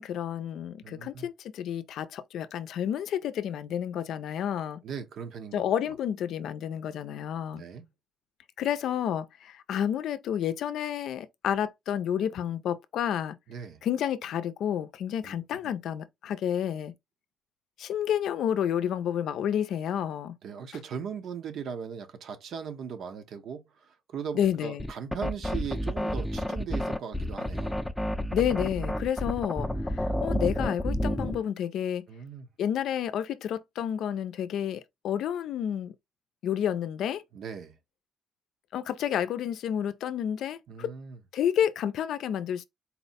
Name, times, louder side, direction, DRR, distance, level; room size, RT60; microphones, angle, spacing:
voice 1, 0.0-4.8 5.5-7.6 8.6-13.4 13.8-16.9 17.8-20.4 24.3-24.9 28.3-32.0 32.6-35.9 36.4-37.2 38.7-40.9 41.3-42.6, left 9 dB, 75° left, 0.4 m, -30 dB
voice 2, 0.8-1.3 4.8-5.9 7.5-7.8 13.5-13.8 15.2-15.4 20.4-27.8 32.1-32.5 37.3-37.7 40.7-41.2, right 7 dB, 70° right, 0.8 m, -39 dB
sound 1, 24.8-31.4, equal, 5° left, 0.5 m, -30 dB
4.2 x 2.1 x 4.1 m
cardioid pair, 90°, 0 cm